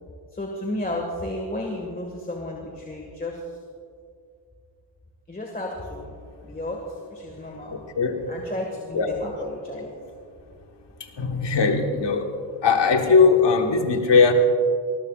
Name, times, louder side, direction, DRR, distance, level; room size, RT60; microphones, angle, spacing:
voice 1, 0.3-3.4 5.3-6.1 6.4-6.8 7.1-7.7 8.3-9.9, left 1 dB, 20° left, 0 dB, 1.8 m, -32 dB
voice 2, 7.7-8.2 8.9-9.1 11.2-12.3 12.6-14.3, left 5 dB, 65° left, 3 dB, 1.6 m, -19 dB
20.0 x 19.5 x 2.5 m, 2.3 s
wide cardioid pair, 100°, 46 cm